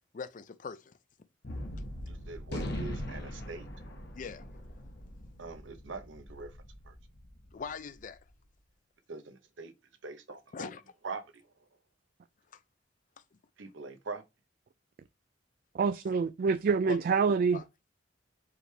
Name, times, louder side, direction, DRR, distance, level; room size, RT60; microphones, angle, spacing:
voice 1, 0.1-0.9 4.1-4.5 7.5-8.2 10.5-10.8 12.5-12.6 16.9-17.2 17.5-17.6, left 5 dB, 45° left, 0.4 m, -41 dB
Gunshot gunfire, 1.4-8.0, left 1 dB, 60° left, 1.0 m, -41 dB
voice 2, 2.1-3.7 5.4-6.6 6.8-6.9 9.1-9.7 10.0-10.7 11.0-11.5 13.6-14.2, right 4 dB, 80° right, 0.8 m, -43 dB
voice 3, 15.7-17.6, right 5 dB, 50° right, 0.3 m, -26 dB
4.9 x 3.3 x 3.3 m
head